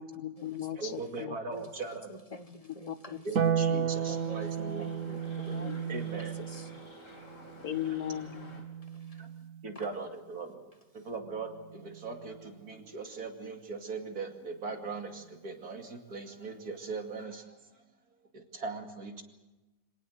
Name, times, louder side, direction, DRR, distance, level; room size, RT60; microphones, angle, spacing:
voice 1, 0.0-1.4 2.6-2.9 3.4-3.8 5.5-5.8 7.6-8.6, left 11 dB, 80° left, 1.6 m, -37 dB
voice 2, 0.8-2.1 3.2-5.2 5.4-6.3 9.2-9.3 9.6-10.7 10.9-17.8 18.3-19.2, right 4 dB, 90° right, 2.9 m, -40 dB
voice 3, 2.1-3.3 4.1-4.4 4.8-5.0 5.2-6.7 8.8-9.3 9.7-9.9, left 1 dB, 25° left, 1.1 m, -47 dB
Harp, 3.3-9.9 11.5-12.5, right 8 dB, 65° right, 1.4 m, -34 dB
sound 1, 3.5-8.7, left 2 dB, 55° left, 3.8 m, -51 dB
25.5 x 18.0 x 7.9 m
omnidirectional pair, 1.6 m